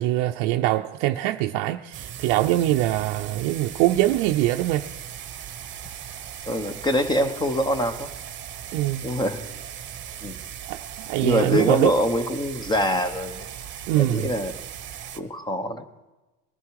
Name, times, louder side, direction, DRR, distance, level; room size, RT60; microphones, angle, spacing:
voice 1, 0.0-4.9 8.7-9.0 10.7-11.9 13.9-14.3, right 15 dB, 60° right, 0.6 m, -23 dB
sound 1, 1.9-15.2, right 9 dB, 30° right, 1.1 m, -38 dB
voice 2, 6.5-8.1 9.0-9.5 10.2-10.4 11.2-13.5 14.0-14.5 15.1-15.8, equal, 10° left, 1.0 m, -24 dB
20.0 x 14.0 x 4.8 m
supercardioid pair, 140°, 37 cm